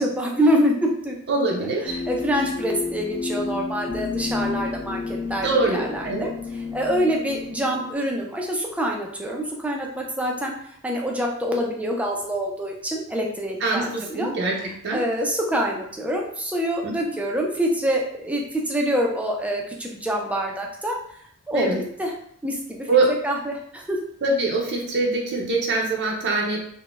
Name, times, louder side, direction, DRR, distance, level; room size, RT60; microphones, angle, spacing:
voice 1, 0.0-1.1 1.5-6.3 6.7-10.5 10.8-14.3 14.9-21.0 21.5-22.1 22.4-22.9 23.2-24.0, equal, 5° right, 0 dB, 0.4 m, -26 dB
voice 2, 1.3-1.9 5.4-6.3 13.6-14.5 14.8-15.0 16.8-16.9 21.5-21.8 22.9-23.1 24.2-26.6, right 3 dB, 55° right, -1 dB, 0.5 m, -23 dB
sound 1, 1.8-7.9, left 3 dB, 40° left, 0.6 m, -31 dB
3.7 x 2.1 x 2.4 m, 0.67 s
head